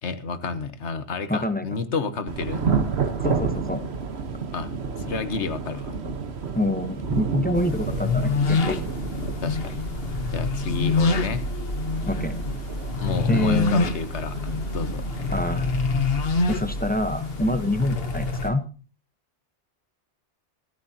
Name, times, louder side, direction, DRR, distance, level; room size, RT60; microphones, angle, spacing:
voice 1, 0.0-2.7 4.5-4.7 5.0-6.0 9.4-9.8 10.3-11.4 12.4-12.6 12.8-15.0, left 4 dB, 75° left, 11 dB, 1.4 m, -30 dB
voice 2, 1.3-1.7 3.2-3.8 6.5-8.8 12.1-12.4 13.3-13.9 15.3-15.7 16.5-18.6, left 1 dB, 10° left, 9 dB, 1.0 m, -26 dB
Thunder / Rain, 2.3-18.5, right 5 dB, 65° right, 1.5 m, -32 dB
sound 1, 7.5-18.5, left 3 dB, 60° left, 1.4 m, -26 dB
16.0 x 13.5 x 2.9 m, 0.36 s
omnidirectional pair, 1.2 m